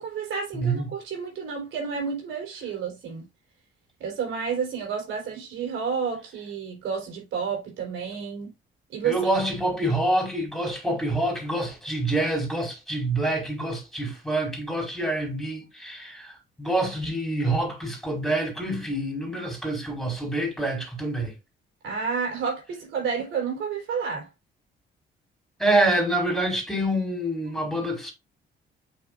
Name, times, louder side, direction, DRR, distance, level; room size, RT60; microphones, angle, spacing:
voice 1, 0.0-3.3 4.0-8.5 8.9-9.4 21.8-24.3, right 6 dB, 80° right, 3.9 m, -30 dB
voice 2, 0.5-0.9 9.0-21.3 25.6-28.1, right 1 dB, ahead, 4.9 m, -26 dB
7.6 x 6.2 x 2.5 m
cardioid pair, 90°, 20 cm